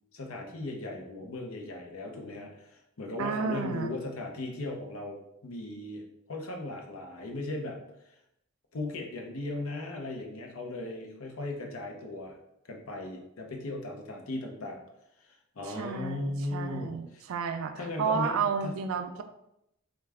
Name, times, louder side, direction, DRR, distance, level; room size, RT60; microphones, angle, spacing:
voice 1, 0.1-7.8 8.1-8.2 8.7-12.4 12.6-14.8 15.2-17.2 17.7-18.8, left 2 dB, 90° left, 2 dB, 0.7 m, -37 dB
voice 2, 3.2-3.9 15.7-19.2, right 6 dB, 75° right, 8 dB, 0.3 m, -32 dB
3.5 x 2.4 x 3.3 m, 0.82 s
head